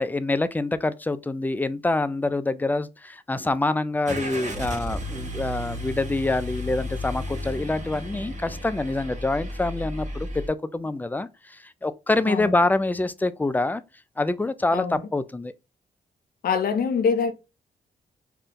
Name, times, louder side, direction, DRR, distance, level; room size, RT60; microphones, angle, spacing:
voice 1, 0.0-13.8 14.2-15.5, left 2 dB, 10° left, 0.3 m, -26 dB
Car / Engine starting, 4.0-10.5, equal, 50° right, 1.0 m, -33 dB
voice 2, 12.3-12.6 14.7-15.1 16.4-17.3, left 6 dB, 70° left, 0.6 m, -24 dB
2.5 x 2.2 x 3.6 m
cardioid pair, 65°, 16 cm